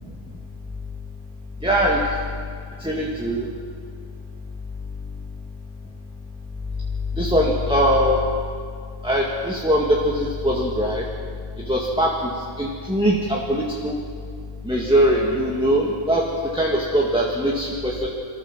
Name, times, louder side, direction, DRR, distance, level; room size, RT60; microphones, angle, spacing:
voice 1, 1.6-2.0 2.8-3.5 7.2-8.2 9.0-11.0 11.7-12.1 12.6-14.0 14.6-16.3 16.5-18.1, equal, 5° right, -3 dB, 1.8 m, -21 dB
28.0 x 14.0 x 7.4 m, 2.2 s
omnidirectional pair, 2.0 m